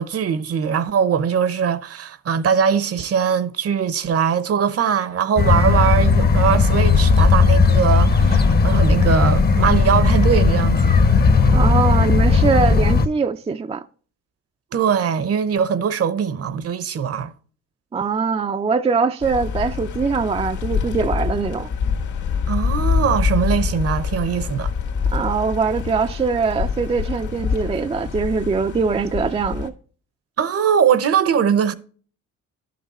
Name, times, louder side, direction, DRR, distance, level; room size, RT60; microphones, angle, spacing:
voice 1, 0.0-11.2 14.7-17.3 22.5-24.7 30.4-31.7, right 7 dB, 50° right, 0.9 m, -21 dB
sound 1, 5.4-13.1, left 4 dB, 30° left, 0.8 m, -16 dB
voice 2, 11.5-13.8 17.9-21.7 25.1-29.7, right 5 dB, 20° right, 0.4 m, -22 dB
sound 2, 19.2-29.7, left 6 dB, 70° left, 1.7 m, -25 dB
11.5 x 5.9 x 4.1 m
cardioid pair, 90°, 30 cm